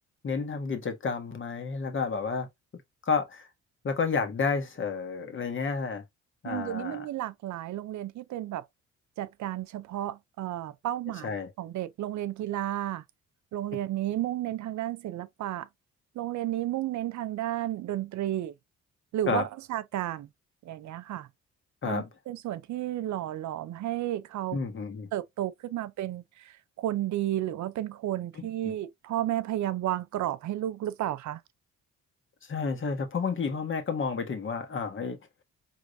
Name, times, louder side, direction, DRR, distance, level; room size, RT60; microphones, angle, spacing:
voice 1, 0.2-2.5 3.0-3.5 3.8-6.0 6.4-7.1 11.2-11.5 19.3-19.4 21.8-22.1 24.5-25.1 28.6-28.7 32.4-35.2, left 5 dB, 40° left, 1.6 m, -30 dB
voice 2, 6.4-8.7 9.2-13.0 13.5-15.7 16.1-18.5 19.1-20.3 20.6-21.3 21.8-24.6 25.1-31.4, right 13 dB, 70° right, 0.7 m, -32 dB
5.0 x 3.5 x 2.6 m
cardioid pair, 90°, 30 cm